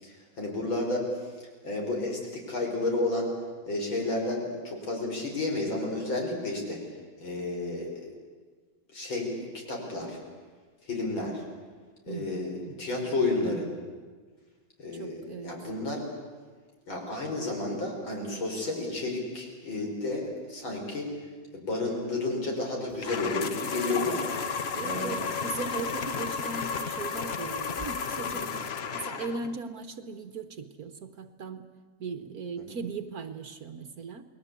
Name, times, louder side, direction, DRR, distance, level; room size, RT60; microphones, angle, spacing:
voice 1, 0.0-3.3 3.7-6.8 7.2-8.1 8.9-9.3 9.7-10.2 10.8-11.4 12.1-13.7 14.8-16.0 16.9-21.1 21.5-24.3 24.8-25.3 28.2-28.5, left 2 dB, 75° left, 0 dB, 6.2 m, -31 dB
voice 2, 12.1-12.9 14.9-15.5 24.7-28.5 28.9-31.7 32.0-34.2, right 4 dB, 55° right, 10 dB, 1.4 m, -38 dB
sound 1, 22.9-28.5, left 2 dB, 15° left, 2.8 m, -46 dB
sound 2, 23.0-29.6, left 5 dB, 45° left, 0.8 m, -33 dB
29.5 x 20.5 x 8.3 m, 1.5 s
omnidirectional pair, 2.2 m